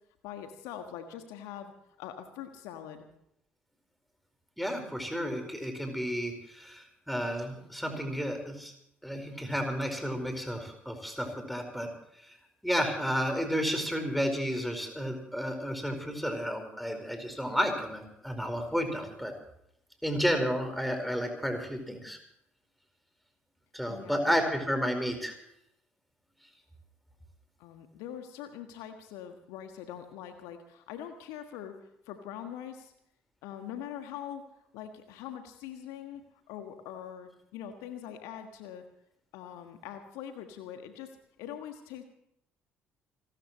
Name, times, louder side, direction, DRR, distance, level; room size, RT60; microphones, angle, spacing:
voice 1, 0.2-1.7 2.0-3.1 23.9-24.3 27.6-32.9 33.4-38.8 39.3-42.0, left 9 dB, 65° left, 7 dB, 1.6 m, -43 dB
voice 2, 4.6-8.7 9.0-11.9 12.2-12.3 12.6-19.3 20.0-22.2 23.7-25.3, equal, ahead, 5 dB, 4.7 m, -32 dB
29.0 x 13.5 x 3.1 m, 0.75 s
figure-of-eight pair, 50°, 6 cm